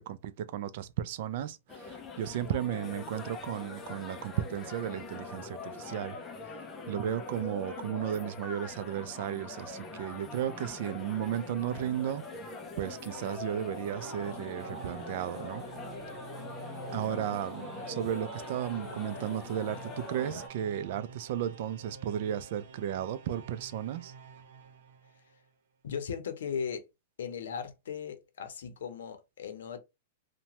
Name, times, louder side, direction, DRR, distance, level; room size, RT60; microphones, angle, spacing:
voice 1, 0.0-6.2 6.4-6.6 6.9-12.5 12.8-15.7 16.9-24.1, right 10 dB, 50° right, 0.3 m, -34 dB
sound 1, 1.7-20.5, left 3 dB, 15° left, 0.4 m, -43 dB
sound 2, 12.4-25.5, right 5 dB, 90° right, 0.7 m, -48 dB
voice 2, 25.8-26.9 27.2-29.8, left 7 dB, 85° left, 0.7 m, -37 dB
2.8 x 2.2 x 2.8 m
supercardioid pair, 160°, 0 cm